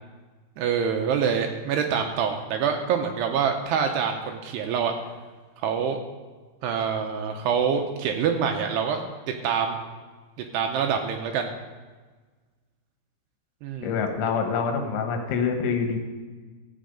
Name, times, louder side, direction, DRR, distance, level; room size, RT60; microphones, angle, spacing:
voice 1, 0.6-4.9 5.6-6.0 6.6-9.0 9.3-9.8 10.4-11.5 13.6-14.0, right 7 dB, 80° right, 4 dB, 2.6 m, -26 dB
voice 2, 13.8-16.0, left 5 dB, 85° left, 4 dB, 3.6 m, -26 dB
15.0 x 8.6 x 5.1 m, 1.4 s
omnidirectional pair, 5.3 m